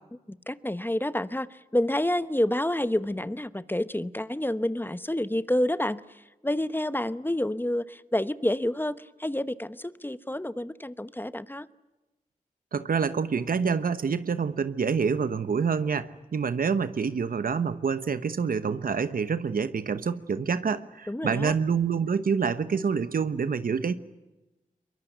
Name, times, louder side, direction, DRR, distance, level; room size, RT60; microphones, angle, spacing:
voice 1, 0.5-6.0 6.4-11.7 21.1-21.6, left 1 dB, 15° left, 15 dB, 0.9 m, -28 dB
voice 2, 12.7-23.9, right 6 dB, 85° right, 13 dB, 1.1 m, -27 dB
23.0 x 22.0 x 9.3 m, 1.1 s
cardioid pair, 50°, 14 cm